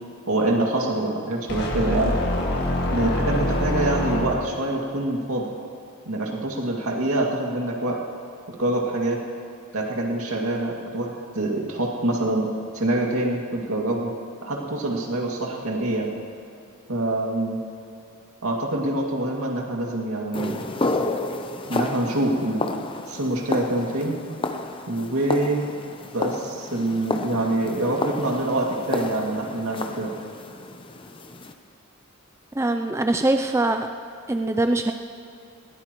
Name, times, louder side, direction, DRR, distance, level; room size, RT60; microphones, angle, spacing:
voice 1, 0.3-2.2 2.9-5.5 6.1-8.0 8.5-9.2 9.7-12.5 12.7-14.1 14.4-16.2 16.9-17.6 18.4-20.7 21.7-22.7 23.1-24.2 24.9-25.6 26.1-30.2, right 2 dB, 80° right, -1 dB, 2.3 m, -25 dB
sound 1, 1.5-4.7, left 1 dB, 50° left, 1.9 m, -25 dB
sound 2, 20.3-31.5, left 2 dB, 25° left, 0.7 m, -31 dB
voice 2, 32.6-33.9 34.3-34.9, right 2 dB, 10° right, 6 dB, 0.4 m, -22 dB
21.0 x 17.0 x 3.1 m, 2.6 s
head